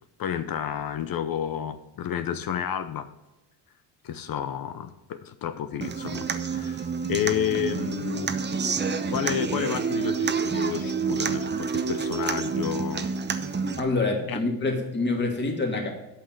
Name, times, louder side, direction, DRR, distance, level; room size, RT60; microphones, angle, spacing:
voice 1, 0.2-3.1 4.0-8.4 9.1-13.1 14.3-14.4, left 9 dB, 45° left, 11 dB, 0.8 m, -31 dB
Human voice / Acoustic guitar, 5.8-13.8, right 5 dB, 20° right, 0.9 m, -28 dB
voice 2, 13.8-15.9, left 3 dB, 20° left, 0 dB, 2.6 m, -26 dB
8.3 x 5.8 x 7.4 m, 0.99 s
supercardioid pair, 85°, 49 cm